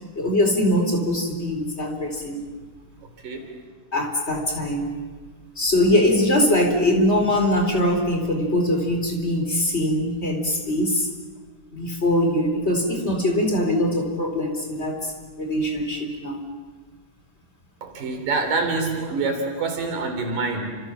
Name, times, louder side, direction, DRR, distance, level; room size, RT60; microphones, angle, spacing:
voice 1, 0.1-2.5 3.9-4.9 5.6-11.1 11.7-15.1 15.4-16.5, left 1 dB, 20° left, 3 dB, 4.2 m, -22 dB
voice 2, 3.2-3.5 17.8-20.8, right 3 dB, 90° right, 4 dB, 5.1 m, -26 dB
29.5 x 27.0 x 7.3 m, 1.4 s
omnidirectional pair, 3.7 m